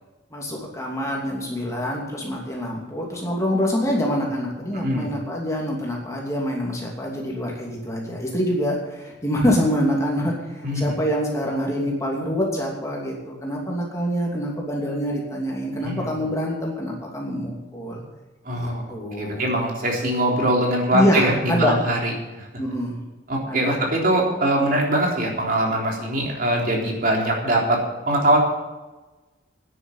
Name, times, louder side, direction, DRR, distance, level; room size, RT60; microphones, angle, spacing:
voice 1, 0.3-18.0 18.5-19.5 20.9-21.7 22.6-23.0 23.5-23.7, equal, 15° left, -2 dB, 2.7 m, -25 dB
voice 2, 4.7-5.1 10.6-11.0 15.8-16.1 18.4-18.9 19.2-22.1 22.4-22.5 23.3-28.4, right 1 dB, 50° right, -1 dB, 3.6 m, -22 dB
10.0 x 9.8 x 9.1 m, 1.1 s
head